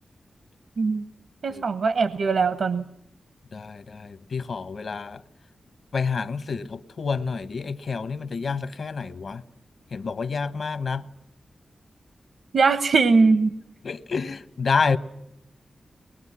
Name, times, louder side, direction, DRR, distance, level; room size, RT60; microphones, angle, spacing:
voice 1, 1.4-2.8 12.5-13.5, right 4 dB, 65° right, 0.9 m, -20 dB
voice 2, 3.5-5.2 5.9-9.4 9.9-11.0 13.8-15.0, left 5 dB, 55° left, 0.9 m, -28 dB
24.0 x 21.5 x 9.8 m
wide cardioid pair, 170°, 0 cm